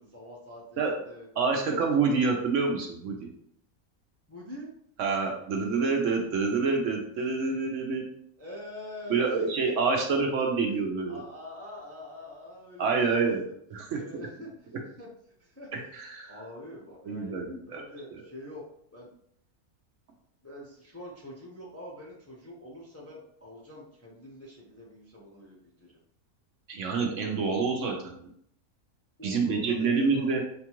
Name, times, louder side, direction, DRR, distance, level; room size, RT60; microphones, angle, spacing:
voice 1, 0.0-1.8 2.1-2.3 4.3-4.7 8.4-10.6 11.1-13.6 14.0-15.1 15.4-15.7 16.2-18.6 18.9-19.1 20.4-25.9 29.2-30.4, left 1 dB, 15° left, -4 dB, 0.6 m, -45 dB
voice 2, 1.4-3.3 5.0-8.1 9.1-11.2 12.8-13.4 13.7-14.0 15.7-16.3 17.0-17.8 26.7-28.2 29.2-30.4, right 4 dB, 65° right, 1 dB, 0.9 m, -27 dB
5.8 x 2.4 x 2.9 m, 0.68 s
omnidirectional pair, 1.5 m